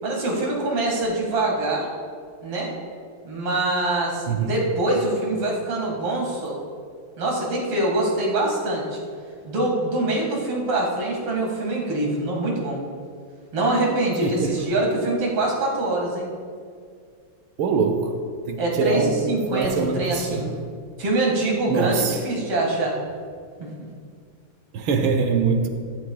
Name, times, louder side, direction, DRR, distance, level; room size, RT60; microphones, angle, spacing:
voice 1, 0.0-1.9 2.4-2.7 3.2-6.6 7.2-9.0 9.4-12.8 13.5-16.3 18.6-20.5 21.0-23.0 23.6-23.7, right 2 dB, 90° right, -1 dB, 2.9 m, -24 dB
voice 2, 14.2-14.7 17.6-18.1 18.5-20.4 21.7-22.1 24.7-25.7, right 5 dB, 70° right, 5 dB, 1.7 m, -23 dB
14.0 x 13.0 x 2.3 m, 2.1 s
omnidirectional pair, 2.4 m